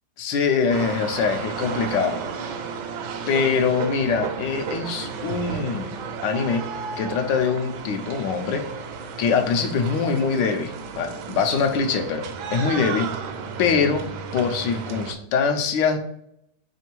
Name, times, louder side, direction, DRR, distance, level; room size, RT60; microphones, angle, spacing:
voice 1, 0.2-2.2 3.3-5.9 6.2-6.7 7.0-8.7 9.2-13.1 13.6-14.1 14.3-16.0, left 5 dB, 75° left, 6 dB, 1.3 m, -23 dB
sound 1, 0.7-15.1, right 6 dB, 75° right, 1.2 m, -33 dB
Guitar, 1.1-12.6, right 3 dB, 55° right, 0.7 m, -42 dB
3.5 x 3.2 x 4.5 m, 0.74 s
omnidirectional pair, 2.0 m